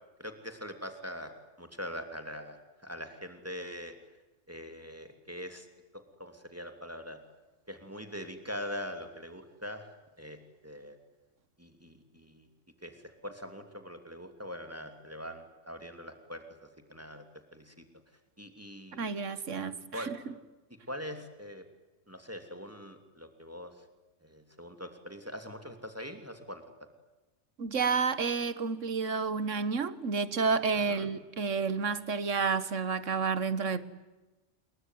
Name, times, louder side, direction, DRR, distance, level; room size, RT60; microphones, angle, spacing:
voice 1, 0.2-1.3 1.6-4.0 4.5-5.7 6.2-7.2 7.7-9.9 10.2-11.0 11.6-12.5 12.8-16.4 16.9-17.2 17.5-17.9 18.4-19.1 19.9-20.1 20.7-21.6 22.1-23.7 24.2-26.6 30.9-31.1, equal, 10° right, 7 dB, 3.0 m, -42 dB
voice 2, 18.9-20.2 27.6-33.9, right 5 dB, 85° right, 15 dB, 1.8 m, -30 dB
27.5 x 22.5 x 9.4 m, 1.1 s
omnidirectional pair, 1.3 m